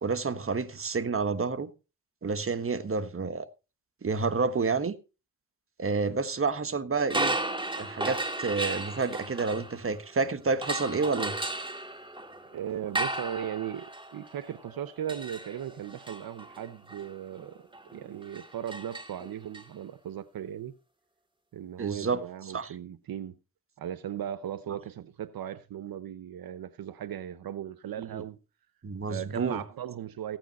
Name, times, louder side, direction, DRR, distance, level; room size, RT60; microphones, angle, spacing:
voice 1, 0.0-1.7 2.2-3.5 4.0-4.9 5.8-7.4 7.8-11.4 21.8-22.2 22.5-22.7 28.1-28.2 28.8-29.6, right 4 dB, 40° right, 1.4 m, -29 dB
sound 1, 7.0-10.1 10.6-19.6, right 2 dB, 15° right, 2.0 m, -35 dB
voice 2, 12.5-20.7 21.5-23.4 23.8-28.4 29.1-30.4, right 10 dB, 80° right, 0.8 m, -37 dB
15.0 x 9.1 x 4.2 m
cardioid pair, 65°, 35 cm